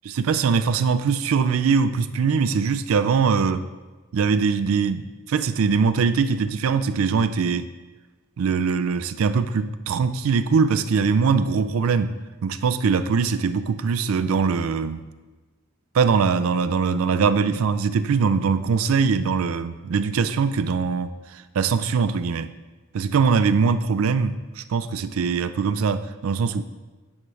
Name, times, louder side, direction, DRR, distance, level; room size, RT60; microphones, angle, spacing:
voice 1, 0.1-3.7 4.1-7.7 8.4-15.1 15.9-22.5 22.9-26.6, right 5 dB, 75° right, 12 dB, 0.4 m, -22 dB
9.2 x 3.2 x 4.8 m, 1.3 s
head